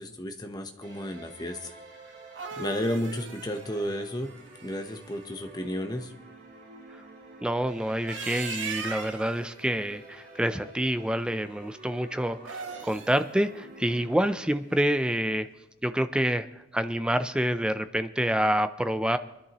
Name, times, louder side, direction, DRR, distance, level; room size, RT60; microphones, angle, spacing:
voice 1, 0.0-1.8 2.6-4.3 4.6-6.1, equal, 20° left, 5 dB, 0.9 m, -32 dB
sound 1, 0.8-14.5, right 2 dB, 45° right, 4.9 m, -50 dB
sound 2, 2.1-5.1 7.9-9.4 12.3-13.2, right 5 dB, 75° right, 1.2 m, -39 dB
voice 2, 7.4-15.5 15.8-16.5 16.7-19.2, right 1 dB, 5° right, 11 dB, 0.4 m, -27 dB
23.5 x 11.0 x 3.0 m, 0.94 s
head